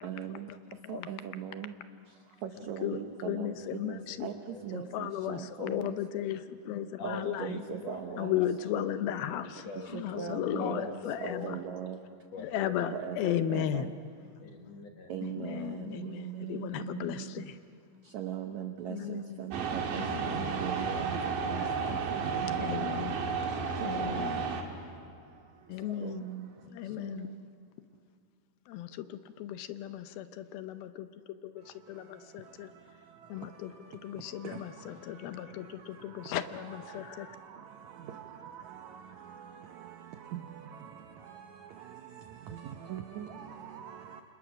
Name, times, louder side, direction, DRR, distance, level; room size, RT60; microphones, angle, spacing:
voice 1, 0.0-0.5 0.9-1.7 2.4-3.5 3.8-4.3 4.6-5.9 7.0-8.4 9.9-10.8 11.2-12.0 12.9-13.9 15.1-17.3 18.1-21.2 21.5-21.6 21.9-22.9 23.8-24.2 26.0-26.4 27.0-27.2 34.4-34.6 38.1-38.6 40.3-40.4 42.5-44.2, right 9 dB, 80° right, 6 dB, 1.6 m, -40 dB
voice 2, 3.3-4.3 4.9-7.4 8.2-9.6 10.4-11.6 12.4-12.9 13.2-13.8 15.4-17.5 18.9-19.2 20.0-20.4 22.6-23.1 23.8-24.4 25.7-26.2 26.7-27.3 28.7-29.1 29.4-31.1 31.4-31.5 31.9-32.7 33.3-33.7 34.0-37.3, left 11 dB, 80° left, 11 dB, 2.5 m, -35 dB
voice 3, 4.5-5.0 7.0-8.5 9.2-11.5 12.3-13.1 13.5-13.6 14.4-15.1, left 3 dB, 60° left, 4 dB, 1.9 m, -43 dB
sound 1, 19.5-24.6, right 5 dB, 60° right, 3.2 m, -32 dB
29.0 x 26.5 x 6.2 m, 2.4 s
omnidirectional pair, 4.5 m